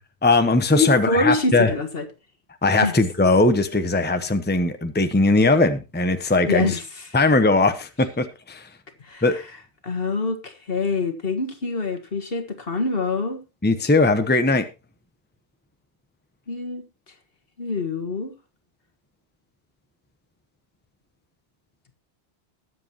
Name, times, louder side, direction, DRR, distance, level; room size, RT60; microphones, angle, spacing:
voice 1, 0.2-1.7 2.6-6.8 7.1-8.7 9.2-9.4 13.6-14.7, left 2 dB, 10° left, 1.0 m, -19 dB
voice 2, 0.8-2.1 2.8-2.9 6.4-7.1 9.0-9.2 9.8-13.4 16.5-16.8 17.6-18.3, left 3 dB, 55° left, 1.8 m, -25 dB
21.0 x 7.9 x 2.9 m
omnidirectional pair, 1.2 m